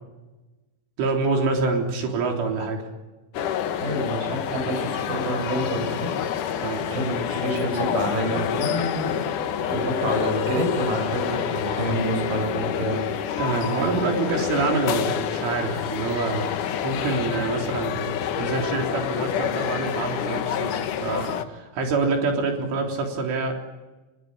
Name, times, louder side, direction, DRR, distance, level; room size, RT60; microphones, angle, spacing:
voice 1, 1.0-2.9 6.6-6.9 13.4-16.5 16.8-23.5, right 4 dB, 80° right, 1 dB, 6.2 m, -26 dB
sound 1, 3.3-21.4, left 9 dB, 75° left, 1.9 m, -28 dB
voice 2, 3.8-6.1 6.9-9.2 9.7-13.0, right 1 dB, 45° right, 5 dB, 8.1 m, -28 dB
26.0 x 21.5 x 9.9 m, 1.1 s
omnidirectional pair, 5.6 m